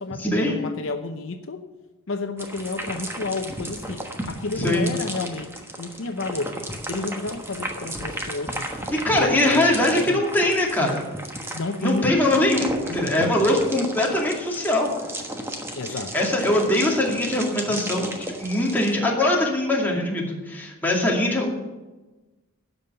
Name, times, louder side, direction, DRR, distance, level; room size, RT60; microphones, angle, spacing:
voice 1, 0.0-1.7 2.1-5.5 5.8-6.6 6.9-8.8 9.1-10.2 11.5-12.2 13.4-13.5 15.8-16.1, left 3 dB, 60° left, 7 dB, 0.7 m, -31 dB
sound 1, 2.4-18.9, right 1 dB, 10° right, 1.2 m, -34 dB
voice 2, 4.6-4.9 8.9-11.0 11.8-14.9 15.9-21.5, left 1 dB, 10° left, -2 dB, 2.3 m, -22 dB
12.5 x 5.5 x 9.0 m, 1.1 s
head